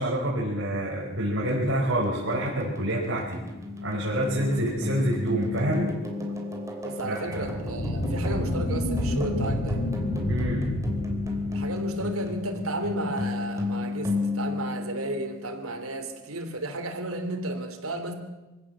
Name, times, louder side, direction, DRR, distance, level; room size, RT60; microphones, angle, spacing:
voice 1, 0.0-3.4 3.8-5.9 7.0-7.5 10.3-10.7, right 1 dB, 60° right, -5 dB, 5.2 m, -27 dB
sound 1, 1.5-15.7, left 3 dB, 15° right, 3.0 m, -34 dB
voice 2, 6.8-9.8 11.5-18.1, right 2 dB, 85° right, 6 dB, 3.3 m, -33 dB
sound 2, 7.3-12.2, left 1 dB, 85° left, 2.9 m, -29 dB
24.5 x 16.5 x 7.5 m, 1.1 s
head